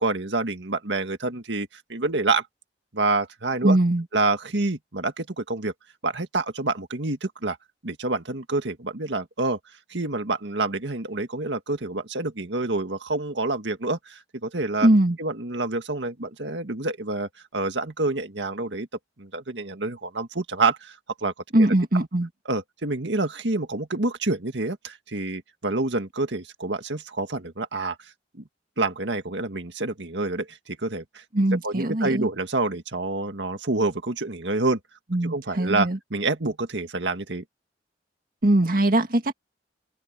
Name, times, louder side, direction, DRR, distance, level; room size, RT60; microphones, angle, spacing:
voice 1, 0.0-2.5 2.9-3.8 4.1-5.7 6.0-7.6 7.8-9.6 9.9-14.9 15.2-18.9 19.2-21.7 21.9-22.1 22.5-28.1 28.8-31.2 31.6-34.8 35.2-37.4, right 3 dB, 75° right, 1.9 m, -27 dB
voice 2, 3.6-4.0 14.8-15.2 21.5-22.3 31.3-32.3 35.1-36.0 38.4-39.3, right 1 dB, 50° right, 1.8 m, -21 dB
head